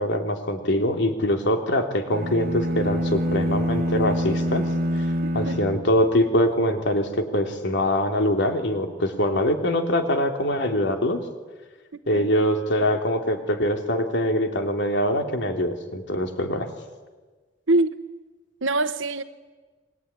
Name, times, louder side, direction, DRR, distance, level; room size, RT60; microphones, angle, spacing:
voice 1, 0.0-4.7 4.9-5.0 5.3-11.2 12.1-16.7, left 1 dB, 65° left, 3.2 m, -23 dB
sound 1, 2.1-6.5, equal, 50° right, 1.3 m, -26 dB
voice 2, 5.2-5.5 11.9-12.2 17.7-17.9 18.6-19.2, right 2 dB, 75° right, 1.2 m, -24 dB
28.0 x 21.5 x 9.8 m
head